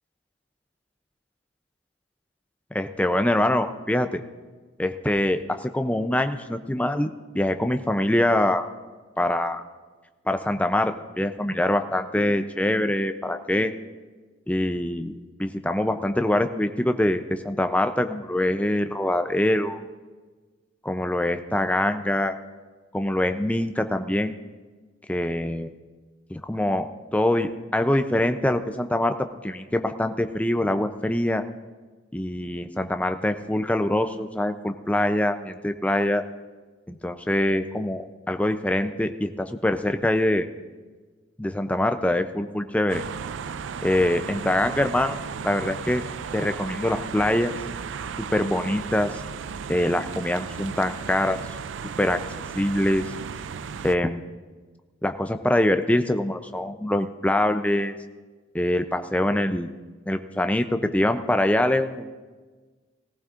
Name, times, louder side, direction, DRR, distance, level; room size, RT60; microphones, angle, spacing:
voice 1, 2.7-4.2 4.8-8.7 9.2-9.6 10.3-13.7 14.5-19.9 20.8-22.4 22.9-24.4 25.1-25.7 26.3-26.9 27.1-31.4 32.1-36.2 36.9-40.5 41.4-43.0 43.8-46.0 46.3-47.5 48.2-49.2 49.7-51.4 52.0-52.2 52.5-53.1 53.8-54.2 55.0-58.0 58.5-59.8 60.1-62.1, left 1 dB, 5° left, 8 dB, 0.4 m, -24 dB
sound 1, 42.9-54.0, right 6 dB, 80° right, 0.4 m, -35 dB
18.0 x 15.0 x 2.5 m, 1.3 s
head